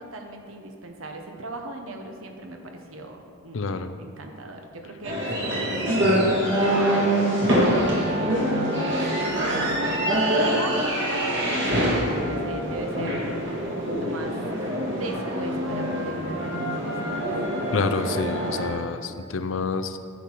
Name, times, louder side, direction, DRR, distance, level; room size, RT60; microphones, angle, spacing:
voice 1, 0.0-17.2, right 2 dB, 75° right, 3 dB, 1.1 m, -38 dB
voice 2, 3.5-3.9 17.7-20.0, left 4 dB, 65° left, 10 dB, 0.5 m, -28 dB
sound 1, 5.0-18.7, equal, 55° right, 2.2 m, -25 dB
10.0 x 7.6 x 4.6 m, 2.3 s
head